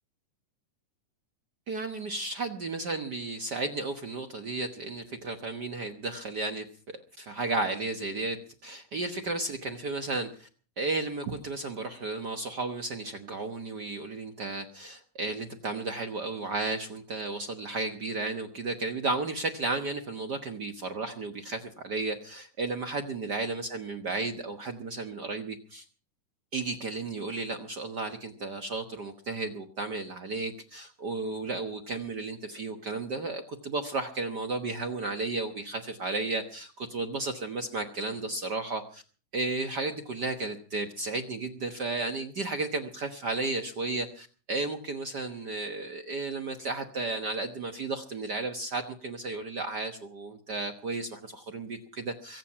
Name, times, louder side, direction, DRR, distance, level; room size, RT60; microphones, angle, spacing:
voice 1, 1.7-6.7 7.2-10.5 10.8-25.8 26.5-39.0 39.3-52.4, right 3 dB, 70° right, 6 dB, 0.9 m, -33 dB
23.5 x 9.4 x 5.8 m, 0.40 s
omnidirectional pair, 3.8 m